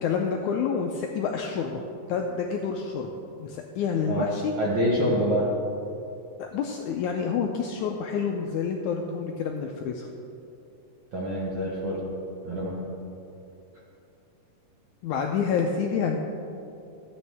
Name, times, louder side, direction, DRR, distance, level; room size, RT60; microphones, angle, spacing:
voice 1, 0.0-1.8 2.1-3.1 3.4-4.5 5.0-5.1 6.4-10.1 15.0-16.2, left 6 dB, 90° left, 2 dB, 1.7 m, -28 dB
voice 2, 4.6-5.5 11.1-12.1 12.4-12.8, equal, 55° right, -6 dB, 1.4 m, -26 dB
14.0 x 8.9 x 3.5 m, 2.7 s
omnidirectional pair, 4.0 m